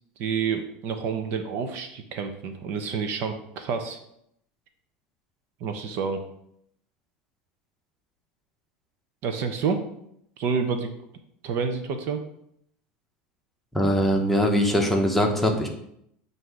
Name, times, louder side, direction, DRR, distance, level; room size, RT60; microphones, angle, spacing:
voice 1, 0.2-4.0 5.6-6.2 9.2-9.8 10.4-10.9 11.4-12.2, right 5 dB, 55° right, 7 dB, 0.7 m, -28 dB
voice 2, 13.7-15.7, equal, 5° left, 1 dB, 0.9 m, -22 dB
7.6 x 2.7 x 4.8 m, 0.73 s
supercardioid pair, 135°, 5 cm